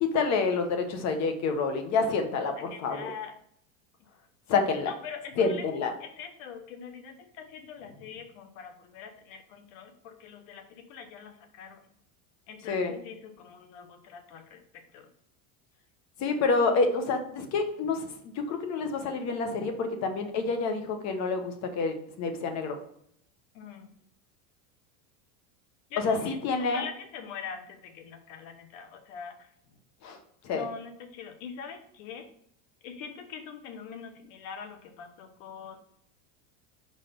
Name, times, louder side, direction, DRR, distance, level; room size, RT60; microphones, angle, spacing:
voice 1, 0.0-3.1 4.5-4.9 5.4-5.9 12.7-12.9 16.2-18.1 18.5-22.8 26.0-26.8 30.0-30.2 30.4-30.6, left 4 dB, 40° left, 6 dB, 1.1 m, -28 dB
voice 2, 2.7-3.3 4.9-11.8 12.5-15.1 23.5-23.9 25.9-29.5 30.5-32.3 32.8-35.8, left 6 dB, 70° left, 6 dB, 1.3 m, -43 dB
5.3 x 4.1 x 5.1 m, 0.67 s
supercardioid pair, 145°, 41 cm